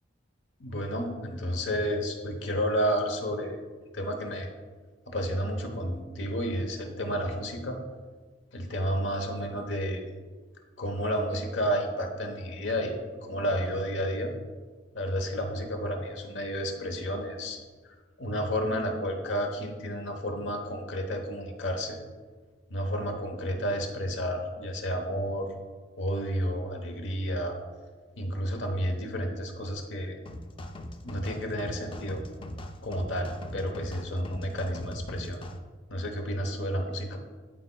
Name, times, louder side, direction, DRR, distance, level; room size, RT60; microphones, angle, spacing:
voice 1, 0.6-3.6 3.9-4.5 5.1-7.8 8.5-10.0 10.8-13.0 13.3-14.3 14.9-17.6 18.2-22.0 22.7-25.5 26.0-27.6 28.2-30.2 31.0-32.2 32.8-35.4 35.9-37.2, equal, 80° left, 3 dB, 1.0 m, -31 dB
sound 1, 30.3-35.6, left 1 dB, 30° left, 0.4 m, -41 dB
12.0 x 4.4 x 2.3 m, 1.4 s
head